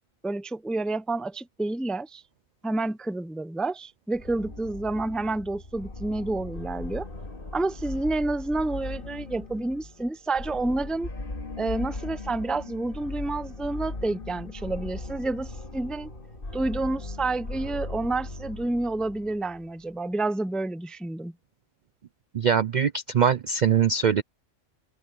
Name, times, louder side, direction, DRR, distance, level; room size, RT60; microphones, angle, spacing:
voice 1, 0.2-2.2 2.6-7.1 7.5-11.1 11.6-16.1 16.5-21.3, right 2 dB, ahead, 0.4 m, -29 dB
sound 1, 4.1-19.8, left 2 dB, 40° left, 2.6 m, -38 dB
voice 2, 22.3-24.2, right 7 dB, 70° right, 0.4 m, -22 dB
omnidirectional pair, 1.4 m